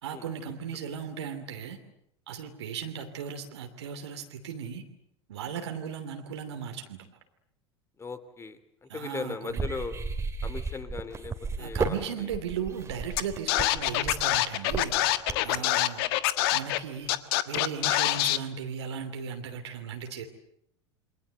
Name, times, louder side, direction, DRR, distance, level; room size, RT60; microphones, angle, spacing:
voice 1, 0.0-1.8 2.3-4.8 5.3-7.1 8.9-9.6 11.6-14.9 15.4-16.0 16.5-17.1 17.4-20.2, right 7 dB, 65° right, 5 dB, 2.9 m, -36 dB
voice 2, 8.0-9.9 10.4-12.3 15.3-15.7, left 4 dB, 15° left, 12 dB, 2.7 m, -39 dB
sound 1, 9.5-15.6, right 4 dB, 20° right, 2.9 m, -33 dB
Scratching (performance technique), 13.2-13.3 13.5-16.8 17.1-18.4, left 16 dB, 55° left, 1.5 m, -25 dB
28.5 x 24.0 x 7.9 m, 0.75 s
figure-of-eight pair, 80°, 15 cm